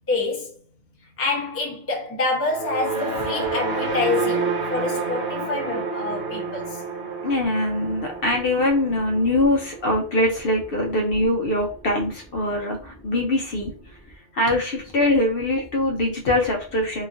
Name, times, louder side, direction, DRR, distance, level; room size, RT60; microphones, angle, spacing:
voice 1, 0.1-0.5 1.0-6.8, left 3 dB, 15° left, 0.5 m, -27 dB
sound 1, 2.5-10.9, right 4 dB, 65° right, 1.1 m, -29 dB
voice 2, 7.2-14.0 14.3-17.1, left 1 dB, 60° left, 0.8 m, -23 dB
2.9 x 2.4 x 2.5 m
omnidirectional pair, 1.2 m